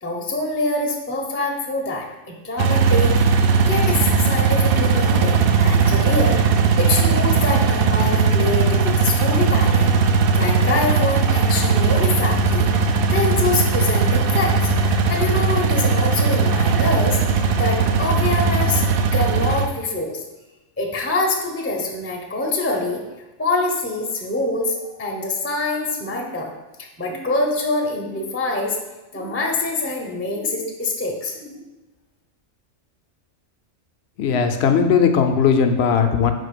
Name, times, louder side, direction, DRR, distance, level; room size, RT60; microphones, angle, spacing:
voice 1, 0.0-18.8 19.1-20.2 20.8-23.0 23.4-26.5 26.8-28.8 29.1-31.6, left 2 dB, 15° left, 0 dB, 0.5 m, -25 dB
sound 1, 2.6-19.7, right 5 dB, 65° right, 0.5 m, -18 dB
voice 2, 34.2-36.3, left 6 dB, 65° left, 6 dB, 0.7 m, -18 dB
4.9 x 4.1 x 5.1 m, 1.1 s
omnidirectional pair, 1.4 m